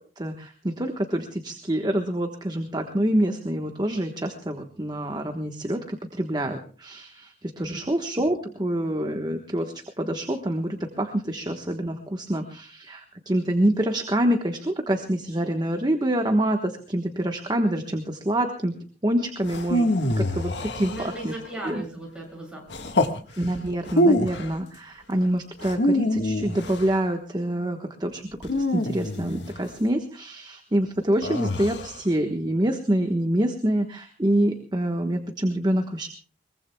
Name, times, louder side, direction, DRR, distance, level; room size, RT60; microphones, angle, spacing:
voice 1, 0.2-18.8 19.0-19.9 20.2-21.3 21.6-21.8 23.4-36.1, right 1 dB, 25° right, 4 dB, 1.2 m, -26 dB
sound 1, 19.5-21.5 22.7-23.2 23.8-24.5 25.6-26.9 28.4-29.6 31.2-32.0, left 1 dB, 75° left, 1.6 m, -25 dB
voice 2, 20.8-23.1, right 1 dB, 5° right, -1 dB, 7.7 m, -38 dB
22.5 x 22.5 x 2.3 m, 0.41 s
head